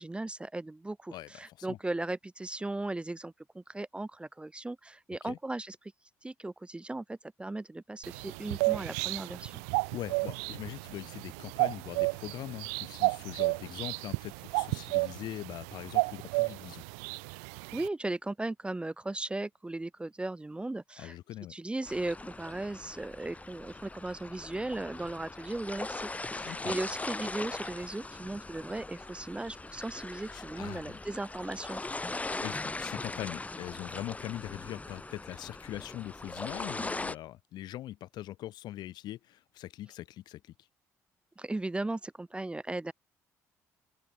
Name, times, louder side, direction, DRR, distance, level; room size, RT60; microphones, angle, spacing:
voice 1, 0.0-5.9 6.2-9.6 17.7-21.2 21.5-31.8 41.4-42.9, right 2 dB, 15° right, 0.7 m, -37 dB
voice 2, 1.1-1.8 5.2-5.4 9.9-16.8 21.0-21.5 26.4-26.7 30.3-31.0 32.4-40.5, left 14 dB, 65° left, 1.2 m, -42 dB
sound 1, 8.0-17.9, right 36 dB, 80° right, 0.8 m, -32 dB
sound 2, 21.9-37.2, left 2 dB, 20° left, 1.8 m, -40 dB
open air
hypercardioid pair, 55°, 8 cm